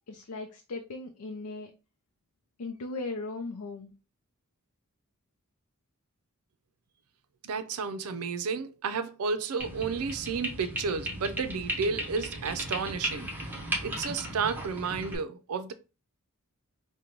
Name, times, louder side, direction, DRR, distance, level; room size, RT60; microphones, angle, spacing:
voice 1, 0.1-1.7 2.6-3.9, left 3 dB, 75° left, 0.5 m, -38 dB
voice 2, 7.4-13.3 13.8-15.7, right 5 dB, 70° right, 0.5 m, -32 dB
sound 1, 9.6-15.2, right 1 dB, 10° right, 0.9 m, -36 dB
5.0 x 2.2 x 2.9 m
head